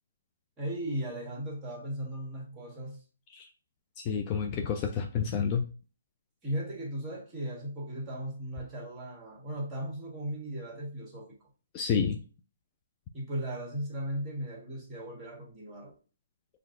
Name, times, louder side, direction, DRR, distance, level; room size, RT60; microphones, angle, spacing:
voice 1, 0.6-3.0 6.4-11.5 13.1-15.9, equal, 15° right, 1.5 m, -37 dB
voice 2, 4.0-5.6 11.7-12.2, left 6 dB, 30° left, 0.4 m, -29 dB
5.5 x 2.5 x 2.5 m
hypercardioid pair, 145°, 0 cm